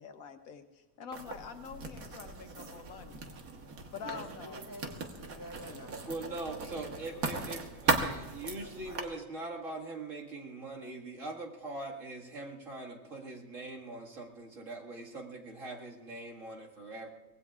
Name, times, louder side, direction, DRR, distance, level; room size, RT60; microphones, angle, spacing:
voice 1, 0.0-3.3 3.9-4.6 7.2-7.4, left 7 dB, 75° left, 7 dB, 1.4 m, -46 dB
Writing, 1.1-9.0, right 4 dB, 80° right, 1.8 m, -37 dB
voice 2, 4.0-7.2 8.1-8.2 8.6-9.5, equal, 15° left, 1 dB, 1.6 m, -49 dB
voice 3, 6.1-17.1, right 2 dB, 60° right, -2 dB, 2.4 m, -42 dB
24.5 x 19.0 x 2.4 m, 1.2 s
omnidirectional pair, 1.5 m